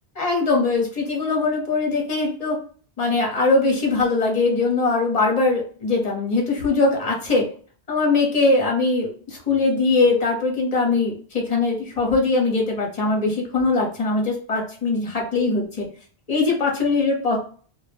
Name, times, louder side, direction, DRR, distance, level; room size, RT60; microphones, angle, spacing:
voice 1, 0.2-2.6 3.0-7.5 7.9-15.9 16.3-17.5, left 3 dB, 40° left, 0 dB, 0.9 m, -21 dB
2.2 x 2.0 x 3.2 m, 0.43 s
omnidirectional pair, 1.1 m